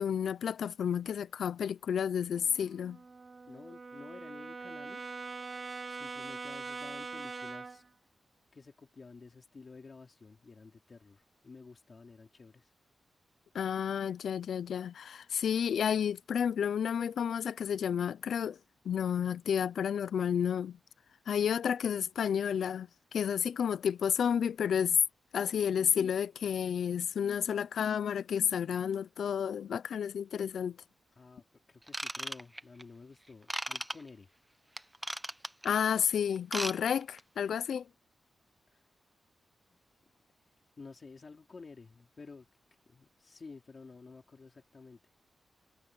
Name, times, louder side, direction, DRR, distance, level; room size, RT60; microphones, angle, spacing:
voice 1, 0.0-3.0 13.5-18.6 18.8-20.8 21.3-25.0 25.3-30.8 35.6-37.9, left 8 dB, 85° left, 0.5 m, -31 dB
Brass instrument, 2.3-7.9, right 4 dB, 30° right, 1.0 m, -43 dB
voice 2, 3.5-5.1 5.9-7.8 8.5-12.7 31.2-31.4 31.7-34.3 39.7-39.8 40.8-42.5 42.9-45.0, left 4 dB, 35° left, 4.3 m, -51 dB
Ratchet pawl / Tools, 31.9-32.8 33.5-33.9 34.8-35.7 36.4-36.8 37.0-37.2 37.7-37.8, right 1 dB, 5° right, 0.8 m, -36 dB
wide cardioid pair, 175°, 0 cm